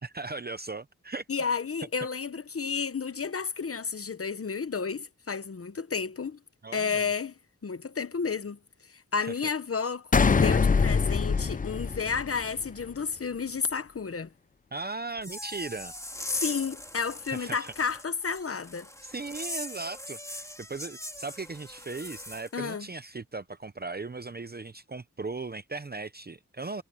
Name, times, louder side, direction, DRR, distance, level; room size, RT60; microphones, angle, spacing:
voice 1, 0.0-1.2 6.6-7.1 9.2-9.3 14.7-15.9 17.3-17.7 19.0-26.8, right 3 dB, 35° right, 0.7 m, -38 dB
voice 2, 1.3-6.4 6.7-7.3 7.6-14.3 16.3-18.9 22.5-22.9, left 5 dB, 50° left, 0.9 m, -31 dB
sound 1, 10.1-12.7, left 5 dB, 30° left, 0.4 m, -24 dB
sound 2, 15.2-22.5, left 1 dB, 10° left, 3.5 m, -41 dB
wide cardioid pair, 95°, 30 cm